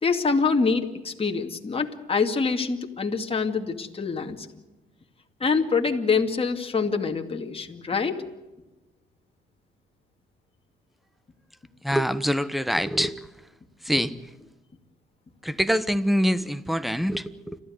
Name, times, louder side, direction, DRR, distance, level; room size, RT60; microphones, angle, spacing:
voice 1, 0.0-4.6 5.4-8.3, left 4 dB, 30° left, 2.3 m, -25 dB
voice 2, 11.8-13.2 13.8-14.1 15.4-17.6, equal, ahead, 1.3 m, -24 dB
29.5 x 14.0 x 8.0 m
cardioid pair, 90°, 20 cm